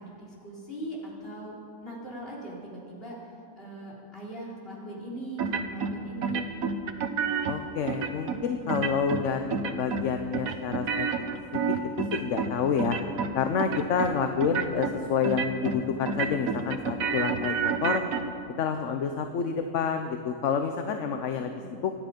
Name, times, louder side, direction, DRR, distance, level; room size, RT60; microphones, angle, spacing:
voice 1, 0.0-1.6 1.8-3.2 3.6-6.5 21.0-21.1 21.4-21.7, right 2 dB, 45° left, -5 dB, 4.3 m, -39 dB
sound 1, 5.4-5.9 6.2-7.6 7.9-8.4 8.7-9.2 9.5-10.1 10.3-12.5 12.8-13.3 13.6-14.1 14.4-14.9 15.2-15.8 16.1-18.2, right 6 dB, 90° right, 1.4 m, -29 dB
voice 2, 7.5-11.1 11.5-11.6 12.0-13.0 13.3-18.0 18.6-21.9, left 6 dB, 65° left, 6 dB, 1.1 m, -28 dB
26.0 x 10.0 x 5.2 m, 2.4 s
omnidirectional pair, 1.4 m